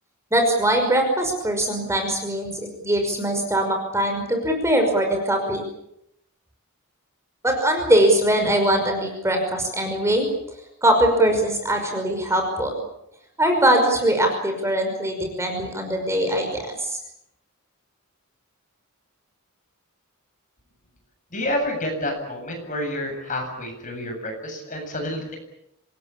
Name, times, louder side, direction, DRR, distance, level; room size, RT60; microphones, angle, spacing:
voice 1, 0.3-2.5 2.8-5.6 7.4-10.3 10.8-12.7 13.4-17.0, right 1 dB, 15° right, 4 dB, 5.5 m, -21 dB
voice 2, 21.3-25.4, left 1 dB, 35° left, 3 dB, 7.8 m, -29 dB
27.0 x 20.0 x 8.6 m, 0.80 s
head